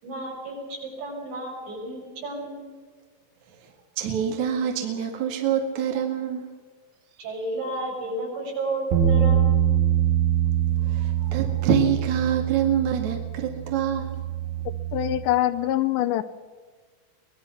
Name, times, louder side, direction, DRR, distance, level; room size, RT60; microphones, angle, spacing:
voice 1, 0.0-2.6 7.2-9.7, right 2 dB, 70° right, -1 dB, 8.2 m, -32 dB
voice 2, 3.6-6.5 10.8-14.2, right 8 dB, 50° right, 3 dB, 2.6 m, -26 dB
sound 1, 8.9-15.2, right 9 dB, 85° right, 4.9 m, -24 dB
voice 3, 14.9-16.2, left 13 dB, 80° left, 11 dB, 2.8 m, -23 dB
24.0 x 19.5 x 5.9 m, 1.5 s
omnidirectional pair, 5.3 m